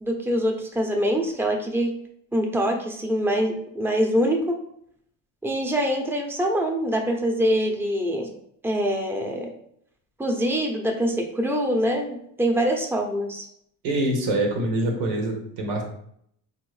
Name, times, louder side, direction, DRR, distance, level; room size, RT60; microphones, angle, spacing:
voice 1, 0.0-1.9 2.3-4.6 5.4-8.3 8.6-9.5 10.2-13.5, equal, 5° right, 2 dB, 0.7 m, -24 dB
voice 2, 13.8-15.8, right 1 dB, 85° right, 2 dB, 1.1 m, -25 dB
3.5 x 2.7 x 3.2 m, 0.69 s
supercardioid pair, 65°, 47 cm